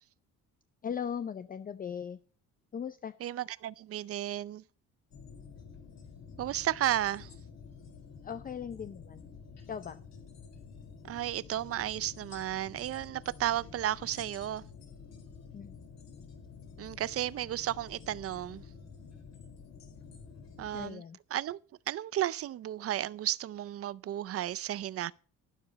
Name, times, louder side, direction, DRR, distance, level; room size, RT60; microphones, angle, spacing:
voice 1, 0.8-2.2 2.7-3.1 8.2-9.3 9.7-10.0 15.5-15.9 20.7-21.2, left 7 dB, 25° left, 0.5 m, -38 dB
voice 2, 3.2-4.6 6.4-7.3 11.0-14.6 16.8-18.6 20.6-21.0 21.3-21.6 21.9-25.1, right 12 dB, 45° right, 0.5 m, -33 dB
sound 1, 5.1-20.9, left 5 dB, 50° left, 4.2 m, -50 dB
12.0 x 12.0 x 4.1 m
cardioid pair, 160°, 33 cm